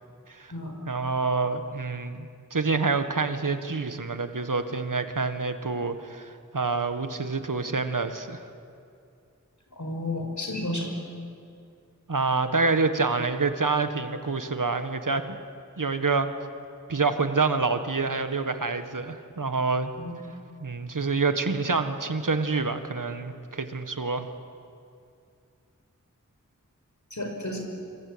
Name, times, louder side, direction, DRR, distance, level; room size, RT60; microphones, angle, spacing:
voice 1, 0.8-8.5 12.1-15.2 15.8-16.3 16.9-19.9 20.6-24.3, right 4 dB, 80° right, 8 dB, 1.7 m, -27 dB
voice 2, 9.7-10.9 20.0-20.1 27.1-27.6, left 1 dB, 65° left, 3 dB, 5.3 m, -32 dB
25.5 x 25.0 x 8.8 m, 2.4 s
wide cardioid pair, 50°, 31 cm